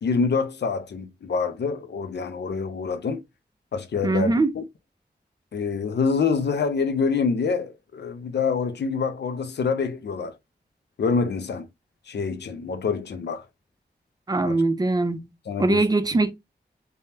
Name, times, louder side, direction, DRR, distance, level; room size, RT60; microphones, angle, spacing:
voice 1, 0.0-3.2 3.7-4.6 5.5-10.3 11.0-11.7 12.1-13.4 14.4-14.6 15.5-15.9 16.1-16.2, left 5 dB, 80° left, 0.5 m, -26 dB
voice 2, 4.0-4.5 14.3-15.3 15.6-16.3, right 2 dB, 20° right, 0.5 m, -21 dB
3.4 x 2.2 x 2.7 m
cardioid pair, 50°, 18 cm